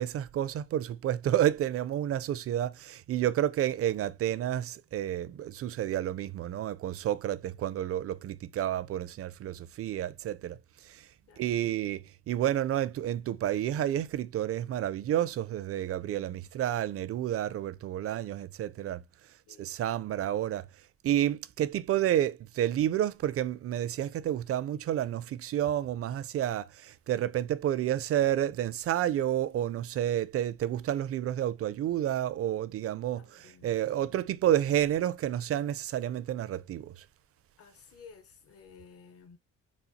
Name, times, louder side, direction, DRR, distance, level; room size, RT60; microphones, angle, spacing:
voice 1, 0.0-10.6 10.8-11.1 11.4-19.0 19.6-20.7 21.0-37.0, right 11 dB, 50° right, 0.4 m, -30 dB
voice 2, 16.0-16.4 18.0-18.2 19.5-19.7 33.2-34.4 37.6-39.4, left 6 dB, 50° left, 0.8 m, -55 dB
4.1 x 2.4 x 2.7 m
cardioid pair, 90°, 30 cm